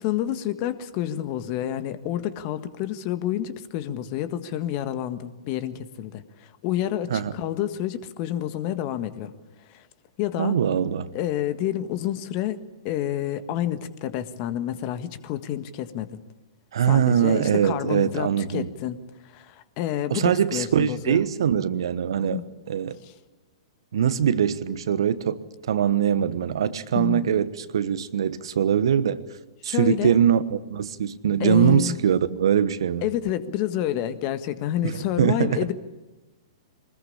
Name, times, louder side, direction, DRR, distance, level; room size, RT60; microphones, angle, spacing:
voice 1, 0.0-9.3 9.7-9.8 10.2-10.6 11.1-12.6 12.8-16.1 16.8-21.2 22.2-22.4 23.0-23.1 26.9-27.3 29.6-30.2 31.4-32.0 33.0-35.7, left 12 dB, 40° left, 1.6 m, -29 dB
voice 2, 10.4-11.1 16.7-18.7 20.1-22.4 22.7-23.0 23.9-29.2 29.6-33.1 34.8-35.7, right 8 dB, 65° right, 1.2 m, -22 dB
24.0 x 20.5 x 8.7 m
figure-of-eight pair, 110°, 3 cm